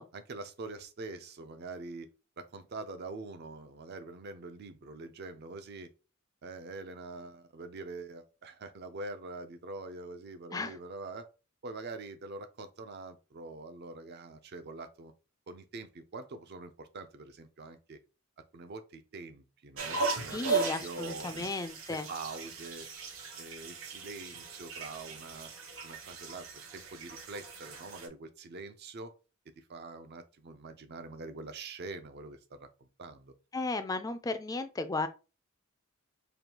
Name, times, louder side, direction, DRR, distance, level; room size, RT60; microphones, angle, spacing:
voice 1, 0.1-2.1 2.4-5.9 6.4-11.3 11.6-15.1 15.5-18.0 18.5-20.6 20.8-21.5 21.9-22.9 23.4-25.5 25.8-29.1 29.6-32.7 33.0-33.3, right 3 dB, 50° right, 0.5 m, -44 dB
sound 1, 19.8-28.1, right 4 dB, 70° right, 1.0 m, -37 dB
voice 2, 20.3-22.1 33.5-35.1, left 3 dB, 15° left, 0.3 m, -34 dB
5.1 x 2.3 x 2.9 m
head